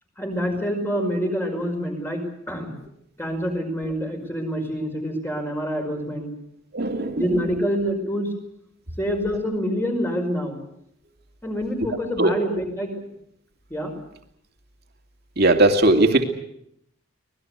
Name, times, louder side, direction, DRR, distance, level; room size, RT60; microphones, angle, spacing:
voice 1, 0.2-2.7 3.2-6.3 7.2-8.3 9.0-10.6 11.4-13.0 13.7-13.9, equal, 10° left, 3 dB, 5.4 m, -26 dB
voice 2, 6.7-7.4 12.2-12.3 15.4-16.2, right 2 dB, 50° right, 5 dB, 2.7 m, -18 dB
25.5 x 19.5 x 8.2 m, 0.73 s
head